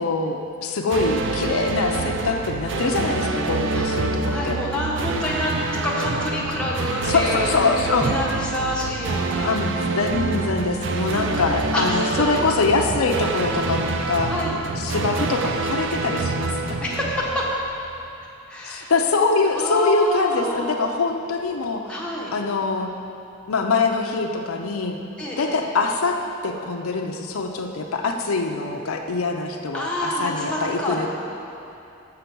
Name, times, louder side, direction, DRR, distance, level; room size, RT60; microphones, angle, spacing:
voice 1, 0.0-4.6 7.0-8.1 9.4-14.3 14.8-16.8 18.6-21.8 22.3-22.9 23.5-25.0 25.3-26.2 26.4-31.1, left 3 dB, 90° left, 3 dB, 0.6 m, -24 dB
sound 1, 0.9-17.9, right 3 dB, 60° right, 0.5 m, -26 dB
voice 2, 4.3-7.5 7.8-9.6 11.7-12.7 14.3-14.6 16.8-17.5 18.5-18.9 19.5-20.7 21.9-22.3 25.2-25.6 29.7-31.1, left 1 dB, 5° left, -5 dB, 1.1 m, -27 dB
6.8 x 5.8 x 6.8 m, 2.8 s
head